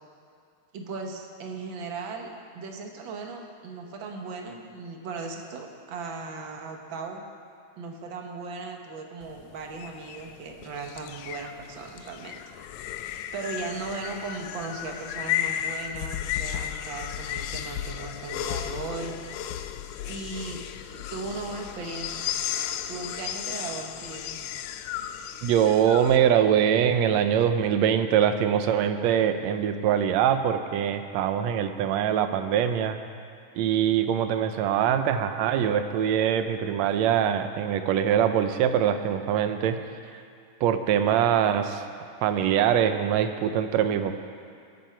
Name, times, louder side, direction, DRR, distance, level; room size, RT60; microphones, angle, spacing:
voice 1, 0.7-7.2 7.7-12.4 13.3-19.1 20.1-20.6 20.9-22.2 22.9-24.4, right 4 dB, 55° right, 2 dB, 1.5 m, -37 dB
sound 1, 9.2-26.2, left 11 dB, 85° left, 2.0 m, -34 dB
voice 2, 25.4-33.0 33.6-39.8 40.6-41.8 42.2-44.2, right 9 dB, 75° right, 8 dB, 1.9 m, -23 dB
21.0 x 9.3 x 4.5 m, 2.3 s
omnidirectional pair, 3.4 m